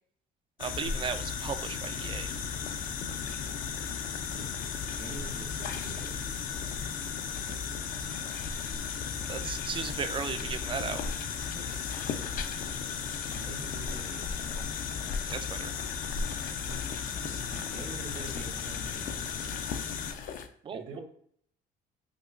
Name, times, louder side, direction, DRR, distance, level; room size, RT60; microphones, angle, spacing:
sound 1, 0.6-20.5, left 6 dB, 55° left, 0.4 m, -35 dB
voice 1, 0.6-2.3 9.3-11.0 15.3-15.7 20.6-21.0, right 6 dB, 30° right, 11 dB, 0.3 m, -36 dB
voice 2, 4.7-6.4 6.7-6.8 7.5-7.8 11.5-12.2 13.0-14.4 16.7-19.3 20.7-21.0, right 2 dB, 55° right, 2 dB, 1.0 m, -46 dB
5.1 x 2.2 x 2.4 m, 0.64 s
cardioid pair, 110°, 17 cm